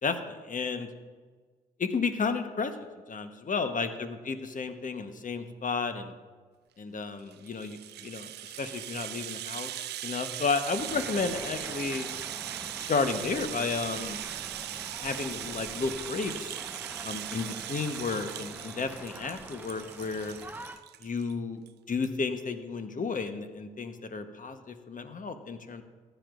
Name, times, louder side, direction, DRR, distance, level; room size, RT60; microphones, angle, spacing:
voice 1, 0.0-0.9 1.8-2.7 3.1-6.1 6.8-12.1 12.9-14.2 15.0-16.5 17.0-20.4 21.0-21.6 21.9-25.8, left 4 dB, 45° left, 8 dB, 1.2 m, -32 dB
Rattle (instrument), 7.2-21.3 21.7-21.8 22.0-22.2, right 13 dB, 60° right, 0.4 m, -39 dB
sound 1, 10.9-20.8, right 1 dB, 10° right, 1.0 m, -44 dB
15.0 x 11.5 x 2.6 m, 1.4 s
hypercardioid pair, 40°, 19 cm